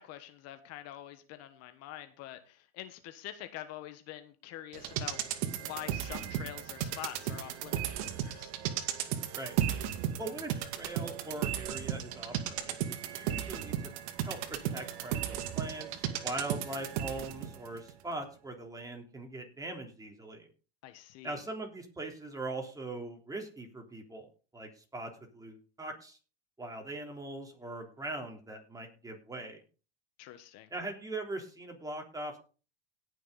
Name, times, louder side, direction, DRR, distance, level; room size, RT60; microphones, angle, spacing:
voice 1, 0.0-8.5 20.8-21.4 30.2-30.7, left 13 dB, 55° left, 9 dB, 1.5 m, -46 dB
sound 1, 4.7-17.6 17.9-18.0, right 10 dB, 65° right, 1.9 m, -35 dB
voice 2, 10.2-13.7 14.2-20.5 21.2-24.3 24.5-26.2 26.6-29.6 30.7-32.4, right 2 dB, 10° right, 2 dB, 3.6 m, -41 dB
18.0 x 6.4 x 4.1 m, 0.36 s
hypercardioid pair, 100°, 31 cm